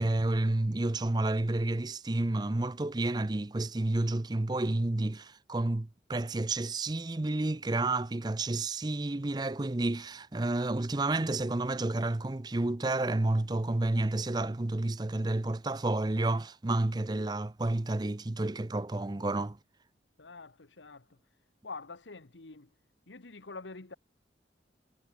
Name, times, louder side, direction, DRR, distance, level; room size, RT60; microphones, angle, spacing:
voice 1, 0.0-19.6, right 2 dB, 20° right, 0.5 m, -30 dB
voice 2, 20.2-21.0 21.6-22.7 23.1-23.9, left 3 dB, 90° left, 1.4 m, -46 dB
head